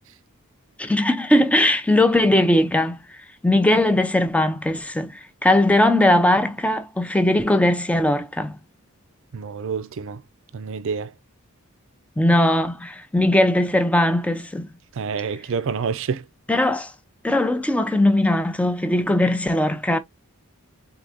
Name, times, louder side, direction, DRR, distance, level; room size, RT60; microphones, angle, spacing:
voice 1, 0.8-3.0 3.4-8.6 12.2-14.7 16.5-16.9 17.2-20.0, left 1 dB, 5° left, 0.5 m, -19 dB
voice 2, 9.3-10.2 10.5-11.1 15.0-16.2, right 5 dB, 60° right, 0.5 m, -28 dB
3.9 x 3.6 x 3.4 m
head